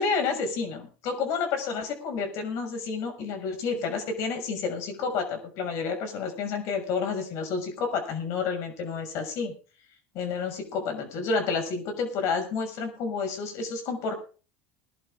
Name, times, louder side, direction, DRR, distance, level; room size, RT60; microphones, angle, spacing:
voice 1, 0.0-9.5 10.1-14.2, left 5 dB, 60° left, 5 dB, 6.5 m, -30 dB
21.0 x 11.0 x 3.8 m, 0.37 s
supercardioid pair, 115°, 6 cm